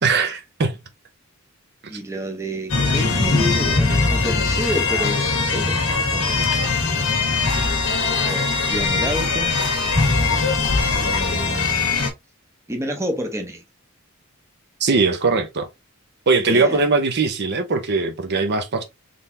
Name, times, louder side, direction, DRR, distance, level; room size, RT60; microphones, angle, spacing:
voice 1, 0.0-0.8 14.8-15.7 16.3-18.8, right 4 dB, 50° right, 0.8 m, -20 dB
voice 2, 1.9-7.1 8.2-9.6 10.1-10.4 10.9-12.0 12.7-13.6 16.5-16.9, equal, 15° right, 0.8 m, -30 dB
sound 1, 2.7-12.1, left 4 dB, 75° left, 1.3 m, -21 dB
3.9 x 3.4 x 2.7 m
head